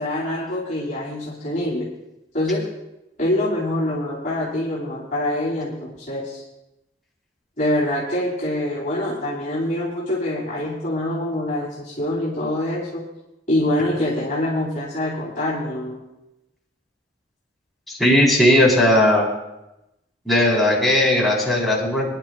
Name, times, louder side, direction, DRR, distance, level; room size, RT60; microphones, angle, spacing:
voice 1, 0.0-1.9 2.3-2.6 3.2-6.4 7.6-13.0 13.5-16.0, left 1 dB, 45° left, -7 dB, 3.3 m, -25 dB
voice 2, 17.9-19.3 20.3-22.2, left 1 dB, ahead, -6 dB, 3.9 m, -17 dB
25.0 x 10.5 x 2.4 m, 0.91 s
head